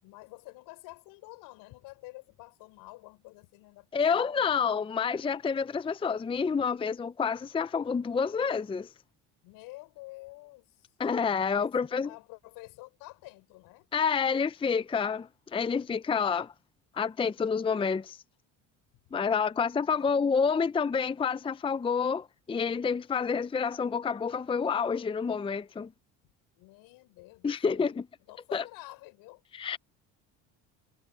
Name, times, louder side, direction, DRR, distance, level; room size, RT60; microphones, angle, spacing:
voice 1, 0.0-4.7 9.4-10.9 11.5-13.9 19.9-20.3 26.6-28.0 28.3-29.4, left 22 dB, 75° left, 6.5 m, -49 dB
voice 2, 3.9-8.9 11.0-12.1 13.9-16.5 16.9-18.2 19.1-25.9 27.4-28.1 28.5-28.6 29.5-29.8, left 6 dB, 15° left, 0.6 m, -28 dB
supercardioid pair, 90°, 34 cm